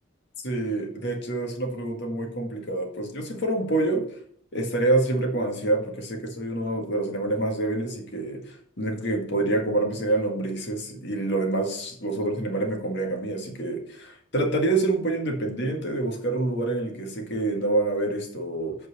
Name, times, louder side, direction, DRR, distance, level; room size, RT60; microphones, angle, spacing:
voice 1, 0.4-4.0 4.5-18.8, right 2 dB, 60° left, 2 dB, 1.9 m, -27 dB
8.6 x 4.6 x 6.7 m, 0.62 s
head